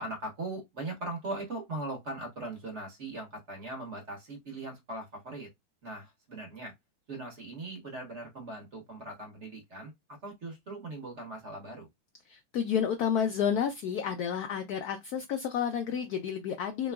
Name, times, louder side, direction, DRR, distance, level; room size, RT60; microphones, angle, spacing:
voice 1, 0.0-5.5 5.8-6.7 7.1-9.9 10.2-11.9, right 2 dB, 40° right, 1.4 m, -40 dB
voice 2, 12.3-16.9, left 8 dB, 75° left, 0.9 m, -30 dB
3.8 x 3.3 x 2.2 m
omnidirectional pair, 2.1 m